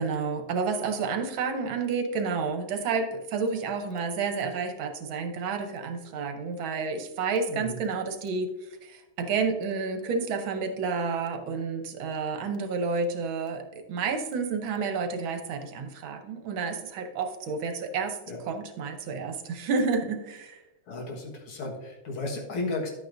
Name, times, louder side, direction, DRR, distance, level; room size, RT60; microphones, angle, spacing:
voice 1, 0.0-8.5 8.8-13.6 13.9-18.2 18.5-20.6, right 4 dB, 70° right, 6 dB, 1.7 m, -30 dB
voice 2, 7.5-7.8 18.3-18.4 20.9-22.9, left 2 dB, 85° left, 0 dB, 2.4 m, -34 dB
11.5 x 8.5 x 2.6 m, 0.98 s
omnidirectional pair, 2.3 m